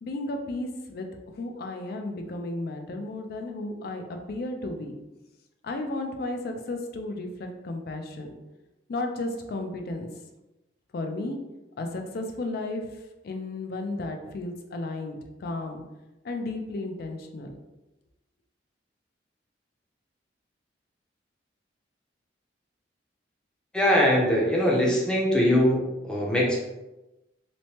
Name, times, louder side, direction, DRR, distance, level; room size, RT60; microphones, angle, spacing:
voice 1, 0.0-5.0 5.6-8.3 8.9-10.1 10.9-11.5 11.8-15.8 16.2-17.5, left 2 dB, 55° left, 4 dB, 0.4 m, -34 dB
voice 2, 23.7-26.6, left 1 dB, 5° left, -3 dB, 0.5 m, -22 dB
3.0 x 2.1 x 2.8 m, 1.0 s
head